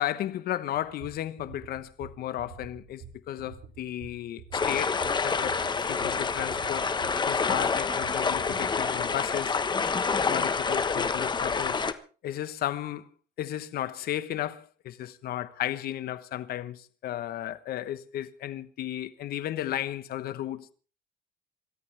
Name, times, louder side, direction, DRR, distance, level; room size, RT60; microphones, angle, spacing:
voice 1, 0.0-5.0 5.2-5.6 5.8-6.9 7.3-9.6 10.3-11.9 12.2-13.1 13.4-20.7, left 12 dB, 65° left, 1.2 m, -34 dB
sound 1, 0.8-8.7, right 7 dB, 70° right, 2.2 m, -47 dB
sound 2, 4.5-11.9, left 5 dB, 25° left, 1.3 m, -27 dB
27.0 x 14.0 x 3.5 m
cardioid pair, 110°, 17 cm